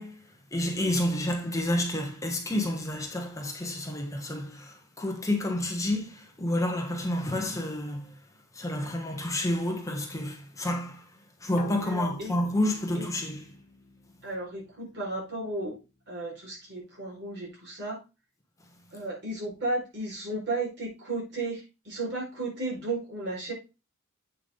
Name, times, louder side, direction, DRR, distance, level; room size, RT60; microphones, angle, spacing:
voice 1, 0.0-8.2 8.5-11.1 11.4-13.5, left 1 dB, 15° left, 1.2 m, -30 dB
sound 1, 11.6-15.0, left 2 dB, 35° left, 1.0 m, -45 dB
voice 2, 11.8-12.3 13.0-13.1 14.2-15.7 16.1-18.0 18.9-23.5, right 2 dB, 55° right, 5.2 m, -34 dB
8.4 x 5.8 x 3.9 m
head